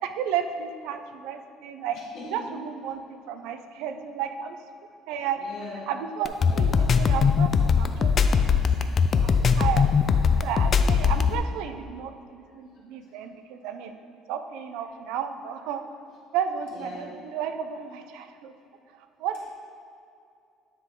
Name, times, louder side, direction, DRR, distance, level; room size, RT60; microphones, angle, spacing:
voice 1, 0.0-2.0 2.3-4.6 5.1-5.4 5.9-8.5 8.9-9.3 9.6-9.9 10.4-13.9 14.3-15.8 16.3-18.5 18.9-19.5, right 8 dB, 80° right, 8 dB, 0.5 m, -33 dB
voice 2, 5.4-5.8 6.4-6.9 11.1-11.2 16.7-17.1, left 2 dB, 60° left, -6 dB, 1.6 m, -41 dB
sound 1, 6.3-11.4, left 6 dB, 35° left, 0.3 m, -20 dB
9.7 x 3.8 x 3.6 m, 2.5 s
cardioid pair, 145°, 0 cm